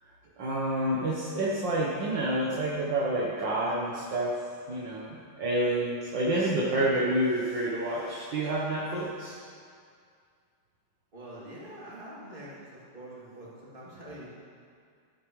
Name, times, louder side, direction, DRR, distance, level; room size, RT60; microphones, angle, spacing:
voice 1, 0.4-9.4, right 1 dB, 65° right, -5 dB, 1.8 m, -29 dB
voice 2, 11.1-14.3, right 1 dB, 25° right, -7 dB, 2.8 m, -45 dB
14.0 x 11.5 x 3.2 m, 2.2 s
omnidirectional pair, 2.3 m